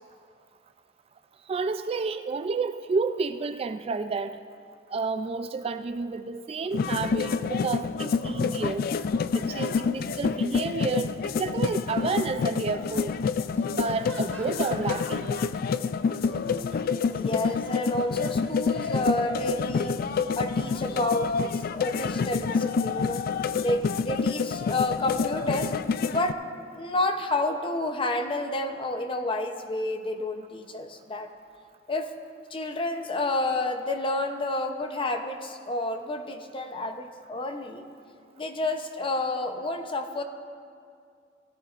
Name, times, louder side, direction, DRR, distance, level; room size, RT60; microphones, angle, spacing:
voice 1, 1.5-4.4 4.9-8.9 9.3-13.1 13.7-15.4, right 4 dB, 30° right, 9 dB, 0.3 m, -30 dB
sound 1, 6.7-26.3, left 5 dB, 55° left, 0.3 m, -28 dB
sound 2, 11.8-15.5 15.9-19.0, right 1 dB, 10° left, 2.0 m, -49 dB
voice 2, 16.3-20.0 20.4-23.3 23.6-25.7 26.1-26.4 26.7-31.3 31.9-32.1 32.5-37.8 38.4-40.2, left 2 dB, 30° left, 6 dB, 0.7 m, -30 dB
18.0 x 13.0 x 2.5 m, 2.3 s
head